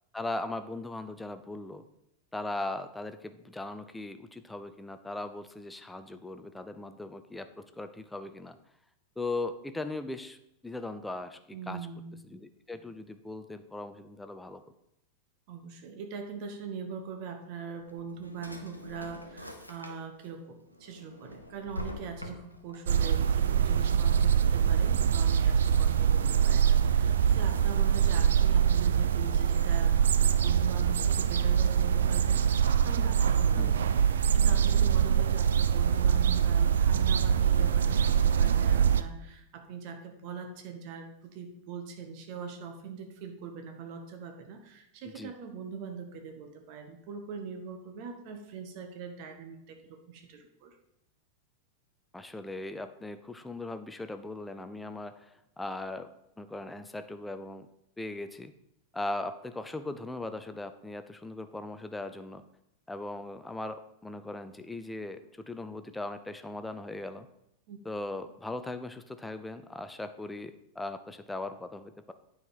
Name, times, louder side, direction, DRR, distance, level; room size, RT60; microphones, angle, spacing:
voice 1, 0.1-1.9 2.3-8.6 9.2-10.4 10.6-11.8 12.2-14.6 33.6-33.8 45.1-45.3 52.1-56.1 56.4-57.7 58.0-58.5 58.9-62.4 62.9-67.3 67.8-72.1, left 2 dB, 5° left, 10 dB, 0.6 m, -39 dB
voice 2, 11.5-12.2 15.5-33.9 34.3-50.7 67.7-67.8, right 6 dB, 45° right, 5 dB, 1.3 m, -42 dB
Drawer open or close, 17.7-20.3 20.7-22.8, left 1 dB, 90° left, 0.8 m, -44 dB
sound 1, 22.9-39.0, right 8 dB, 65° right, 0.4 m, -24 dB
8.9 x 4.7 x 5.6 m, 0.79 s
figure-of-eight pair, 90°, 0 cm